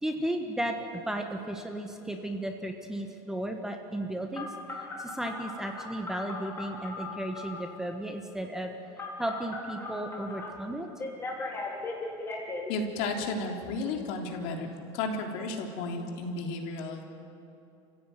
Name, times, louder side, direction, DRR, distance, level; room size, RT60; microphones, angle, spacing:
voice 1, 0.0-4.5 5.0-8.7 9.2-10.9, right 1 dB, 5° right, 4 dB, 1.3 m, -34 dB
Telephone, 4.3-7.7 9.0-10.5 11.0-12.6, left 3 dB, 15° left, 3.8 m, -38 dB
voice 2, 12.7-14.7 14.9-17.0, left 3 dB, 65° left, 2 dB, 3.5 m, -33 dB
29.5 x 16.0 x 9.2 m, 2.8 s
cardioid pair, 165°, 14 cm